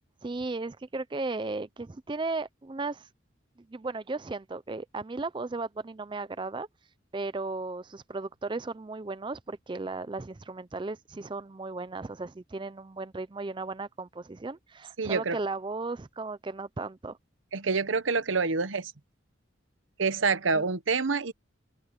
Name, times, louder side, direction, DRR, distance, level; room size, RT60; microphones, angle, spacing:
voice 1, 0.2-3.1 3.7-6.7 7.1-17.2 20.5-20.6, right 3 dB, 25° right, 0.4 m, -35 dB
voice 2, 15.0-15.4 17.5-18.9 20.0-21.3, right 4 dB, 80° right, 1.0 m, -27 dB
head